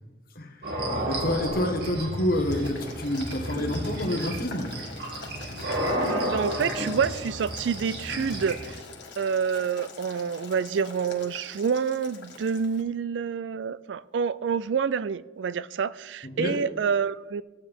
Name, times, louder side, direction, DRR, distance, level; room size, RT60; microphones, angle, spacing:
voice 1, 0.3-4.7 16.3-16.6, left 1 dB, 55° left, 1.4 m, -28 dB
sound 1, 0.6-8.7, equal, 60° right, 2.2 m, -32 dB
Boiling, 2.5-12.8, left 4 dB, 80° left, 1.7 m, -44 dB
voice 2, 6.0-8.8 9.2-17.4, right 6 dB, 85° right, 0.4 m, -28 dB
15.5 x 8.6 x 3.6 m
head